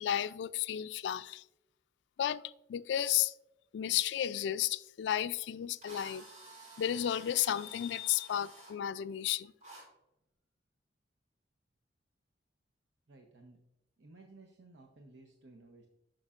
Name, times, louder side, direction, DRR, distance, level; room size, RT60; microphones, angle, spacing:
voice 1, 0.0-1.4 2.2-2.4 2.7-3.3 3.7-6.2 6.8-9.5, left 11 dB, 80° left, 0.3 m, -33 dB
Drill, 5.2-5.3 5.8-8.7 9.6-9.8, right 2 dB, 40° right, 2.7 m, -52 dB
voice 2, 13.1-13.6 14.0-15.9, right 2 dB, 90° right, 0.8 m, -56 dB
9.6 x 6.4 x 2.4 m
head